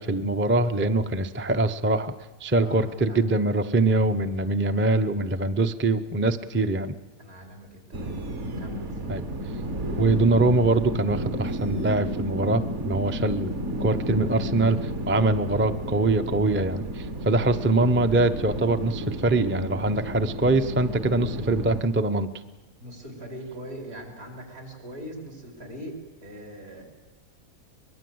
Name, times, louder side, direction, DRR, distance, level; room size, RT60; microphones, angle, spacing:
voice 1, 0.0-2.1 2.4-6.9 9.1-9.3 10.0-13.5 13.8-22.3, right 2 dB, 15° right, 8 dB, 0.5 m, -23 dB
voice 2, 2.5-3.2 7.2-8.1 8.6-9.1 17.3-17.6 22.8-26.8, right 1 dB, 70° right, 2 dB, 5.1 m, -41 dB
sound 1, 7.9-21.8, equal, 55° right, 1.8 m, -32 dB
23.5 x 21.0 x 7.9 m, 1.2 s
omnidirectional pair, 1.6 m